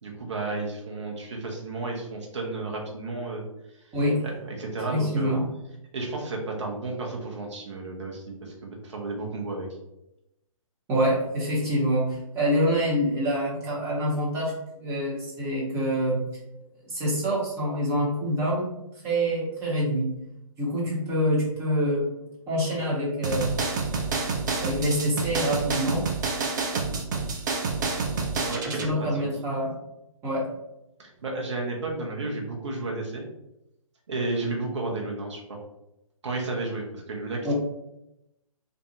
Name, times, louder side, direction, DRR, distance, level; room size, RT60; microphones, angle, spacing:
voice 1, 0.0-3.4 3.7-3.9 4.2-5.3 5.9-9.7 28.4-29.3 31.0-33.2 34.1-35.6 36.2-37.5, right 2 dB, 55° right, -1 dB, 0.9 m, -32 dB
voice 2, 3.9-4.2 4.9-5.4 10.9-14.5 14.8-16.2 16.9-18.7 19.0-20.1 20.6-22.0 22.5-23.6 24.6-26.0 28.7-29.8 30.2-30.4 37.4-37.5, equal, 15° right, -6 dB, 1.0 m, -26 dB
sound 1, 23.2-28.9, right 4 dB, 30° right, 0.5 m, -28 dB
2.5 x 2.4 x 4.0 m, 0.87 s
figure-of-eight pair, 130°, 18 cm